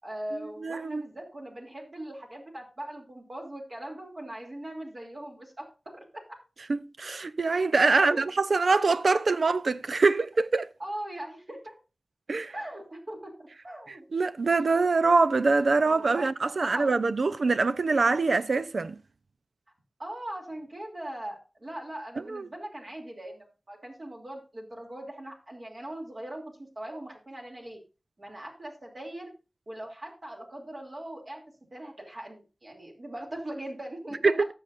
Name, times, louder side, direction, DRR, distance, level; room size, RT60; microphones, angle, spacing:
voice 1, 0.0-6.2 7.9-8.2 10.8-11.7 12.5-14.1 15.8-16.3 16.6-16.9 20.0-27.8 28.2-29.3 29.7-31.4 31.7-34.3, right 1 dB, 50° right, 2.9 m, -40 dB
voice 2, 0.6-1.0 6.7-10.7 12.3-12.5 14.1-19.0 22.3-22.5 34.2-34.5, right 3 dB, 80° right, 0.6 m, -24 dB
18.0 x 6.8 x 2.6 m
wide cardioid pair, 60°, 0 cm